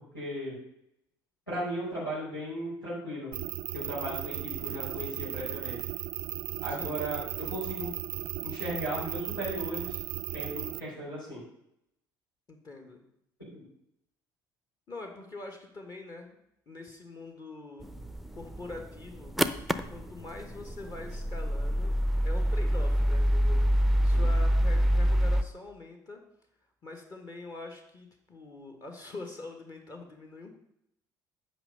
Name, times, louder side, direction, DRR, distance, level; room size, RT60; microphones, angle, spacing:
voice 1, 0.1-0.5 1.5-3.3 3.7-5.8 6.6-7.9 8.4-10.0 10.3-11.4 13.5-13.6 24.1-24.2, right 1 dB, 90° left, -10 dB, 4.6 m, -36 dB
sound 1, 3.3-10.8, right 16 dB, 50° right, 0.4 m, -36 dB
voice 2, 6.7-7.0 12.5-13.0 14.9-16.3 16.7-17.9 18.3-19.3 19.9-21.9 22.2-23.6 24.0-26.2 26.8-30.5, left 2 dB, 35° left, 4 dB, 1.6 m, -44 dB
sound 2, 17.8-25.4, equal, ahead, 0.6 m, -26 dB
8.7 x 5.7 x 6.7 m, 0.77 s
figure-of-eight pair, 55°, 11 cm